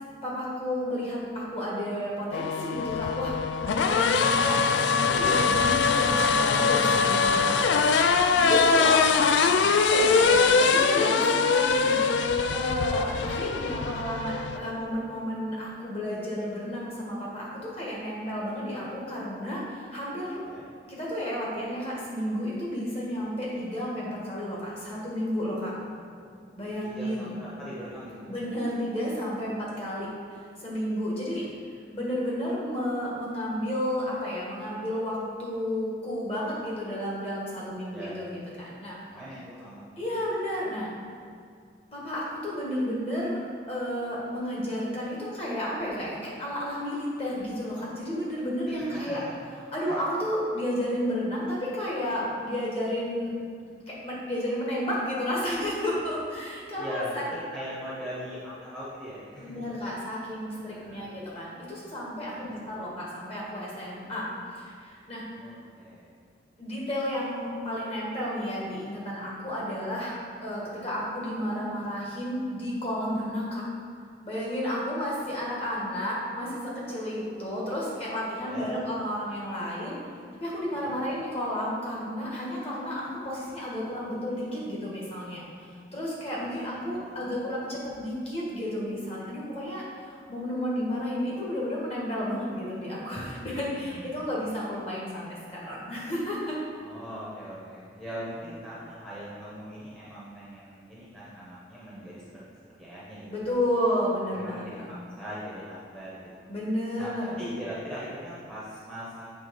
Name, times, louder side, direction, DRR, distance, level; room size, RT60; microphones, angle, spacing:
voice 1, 0.2-3.3 3.6-7.5 8.3-8.9 9.7-12.0 12.5-20.4 20.9-25.7 26.6-27.3 28.3-30.1 30.6-31.4 31.9-38.3 38.6-39.0 40.0-40.9 41.9-43.4 43.7-49.2 49.7-53.4 54.0-57.2 59.4-64.2 64.5-65.2 66.6-73.6 74.2-80.0 80.4-96.6 103.3-104.6 106.5-107.3, equal, 30° left, -5 dB, 1.5 m, -32 dB
sound 1, 2.3-14.6, left 5 dB, 75° left, 0.3 m, -23 dB
voice 2, 8.7-9.6 10.0-10.7 20.4-20.6 26.1-26.5 26.8-28.3 31.3-31.5 37.9-38.2 39.0-39.8 40.1-40.3 48.7-49.3 49.9-50.0 56.8-59.6 60.5-61.1 62.2-62.5 65.3-66.1 70.8-70.9 78.4-78.7 80.7-81.0 86.3-86.5 86.7-87.4 93.8-94.1 96.8-102.4 102.8-103.5 104.3-106.5 107.0-109.2, equal, 5° left, -9 dB, 1.0 m, -41 dB
7.2 x 3.6 x 5.2 m, 2.2 s
head